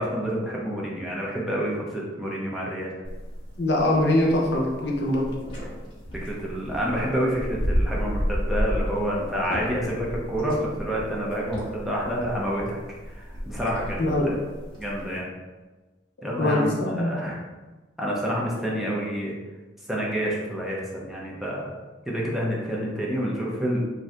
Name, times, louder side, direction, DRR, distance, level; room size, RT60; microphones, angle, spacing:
voice 1, 0.0-2.9 6.1-12.8 13.4-14.3 14.8-15.3 16.2-17.4 18.0-19.3 19.9-21.7 22.1-23.8, equal, ahead, -5 dB, 0.5 m, -28 dB
sound 1, 3.0-15.2, equal, 25° left, 0.9 m, -32 dB
voice 2, 3.6-5.3 14.0-14.3 16.4-17.2, left 1 dB, 60° left, -1 dB, 0.6 m, -23 dB
2.6 x 2.5 x 3.2 m, 1.2 s
head